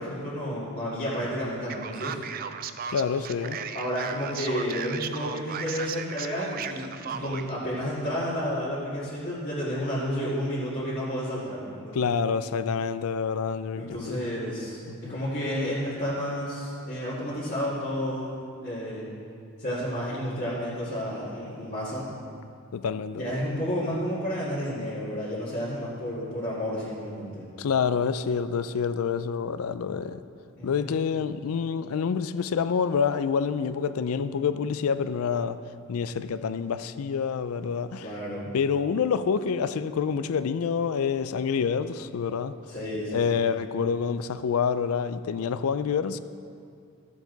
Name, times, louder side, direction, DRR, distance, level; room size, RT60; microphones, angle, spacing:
voice 1, 0.0-2.2 3.7-12.0 13.8-19.1 19.6-22.1 23.1-27.5 30.6-31.0 38.0-38.5 42.7-43.4, equal, 45° left, -11 dB, 2.1 m, -31 dB
Male speech man speaking, 1.7-7.5, right 7 dB, 40° right, 0.3 m, -36 dB
voice 2, 2.9-3.6 11.9-14.2 14.9-15.2 22.7-23.2 27.6-30.2 30.6-35.6 35.9-38.1 38.5-42.5 43.1-46.2, left 6 dB, 70° left, 13 dB, 0.4 m, -27 dB
14.0 x 7.4 x 3.9 m, 2.4 s
head